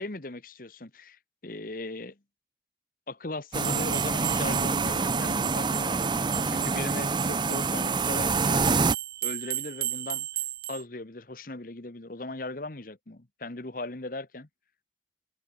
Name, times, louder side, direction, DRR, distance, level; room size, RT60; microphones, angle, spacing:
voice 1, 0.0-2.2 3.1-8.9 9.2-10.3 10.7-14.5, left 2 dB, 50° left, 1.4 m, -38 dB
sound 1, 3.5-8.9, right 4 dB, 25° right, 0.7 m, -26 dB
sound 2, 3.6-10.8, right 14 dB, 55° right, 1.4 m, -36 dB
head